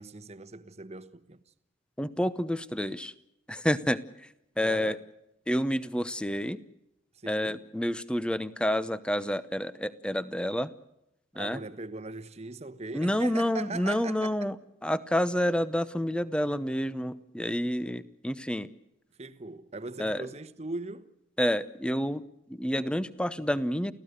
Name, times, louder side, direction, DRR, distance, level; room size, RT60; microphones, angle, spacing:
voice 1, 0.0-1.4 4.6-5.0 7.2-7.6 11.3-14.5 19.2-21.1, right 2 dB, 35° right, 1.1 m, -40 dB
voice 2, 2.0-3.1 3.5-4.3 4.6-5.0 5.5-6.6 7.3-10.7 11.3-11.6 12.9-14.6 14.8-18.7 20.0-20.3 21.4-23.9, equal, 5° left, 0.8 m, -29 dB
29.5 x 16.0 x 6.6 m
head